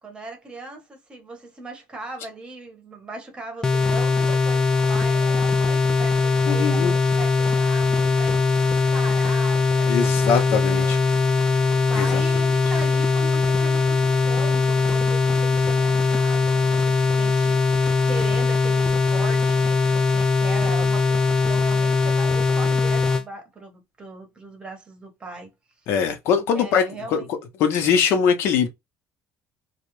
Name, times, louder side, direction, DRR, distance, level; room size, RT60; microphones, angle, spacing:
voice 1, 0.0-11.0 11.7-25.5 26.5-27.3, right 3 dB, 20° right, 0.9 m, -38 dB
sound 1, 3.6-23.2, left 4 dB, 15° left, 0.3 m, -20 dB
voice 2, 6.5-7.0 9.9-11.0 11.9-12.2 25.9-27.2 27.6-28.7, left 7 dB, 65° left, 0.7 m, -22 dB
2.4 x 2.1 x 3.0 m
cardioid pair, 140°, 4 cm